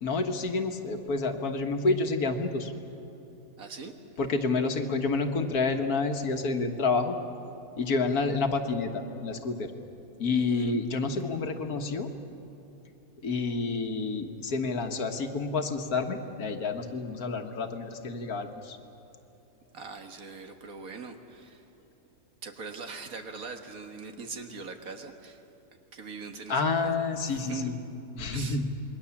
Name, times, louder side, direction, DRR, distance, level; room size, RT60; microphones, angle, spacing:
voice 1, 0.0-2.7 4.2-7.2 7.8-9.7 10.2-12.1 13.2-18.8 26.5-27.7 28.2-28.7, left 3 dB, 80° left, 5 dB, 1.8 m, -29 dB
voice 2, 3.6-3.9 10.3-10.8 19.7-21.7 22.4-25.4 25.9-27.8 28.3-28.6, right 4 dB, 65° right, 5 dB, 1.9 m, -41 dB
27.5 x 21.0 x 7.2 m, 2.9 s
omnidirectional pair, 1.6 m